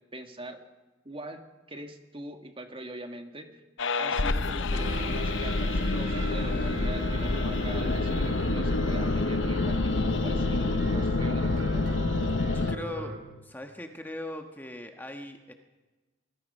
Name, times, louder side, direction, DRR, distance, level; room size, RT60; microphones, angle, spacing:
voice 1, 0.1-0.6 1.1-3.6 4.0-11.9, right 1 dB, 25° right, 5 dB, 1.8 m, -42 dB
sound 1, 3.8-12.8, left 3 dB, 65° left, 0.8 m, -27 dB
sound 2, 4.7-13.2, right 1 dB, 75° right, 4.0 m, -37 dB
voice 2, 12.5-13.2 13.4-15.5, left 1 dB, 10° left, 4 dB, 1.3 m, -39 dB
24.5 x 20.0 x 5.5 m, 1.2 s
head